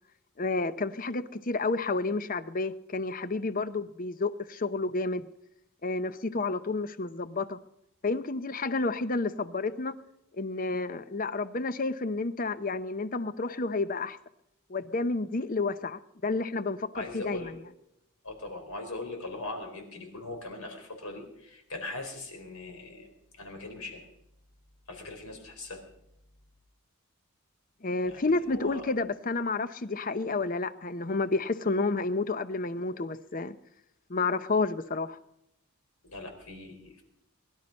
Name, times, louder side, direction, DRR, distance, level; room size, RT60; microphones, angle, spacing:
voice 1, 0.4-5.3 5.8-7.6 8.0-9.9 10.4-14.2 14.7-17.6 27.8-33.5 34.1-35.2, left 3 dB, 40° left, 13 dB, 0.7 m, -30 dB
voice 2, 16.9-17.5 18.2-23.1 23.4-24.1 24.9-25.8 28.0-28.8 36.0-37.0, left 2 dB, 75° left, 4 dB, 4.4 m, -40 dB
21.5 x 12.0 x 5.3 m, 0.82 s
head